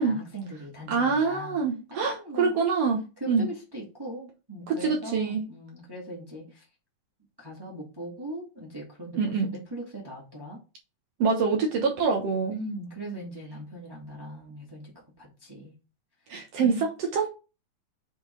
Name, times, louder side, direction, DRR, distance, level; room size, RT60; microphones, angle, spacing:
voice 1, 0.0-1.6 1.9-2.5 3.2-6.6 7.4-10.6 12.5-14.9 15.2-15.7 16.5-16.9, right 1 dB, 10° right, 1.3 m, -40 dB
voice 2, 0.9-3.0 3.3-3.4 4.7-5.4 9.2-9.5 11.2-12.6 16.3-17.3, right 5 dB, 70° right, 1.5 m, -25 dB
7.8 x 3.9 x 3.9 m
omnidirectional pair, 4.2 m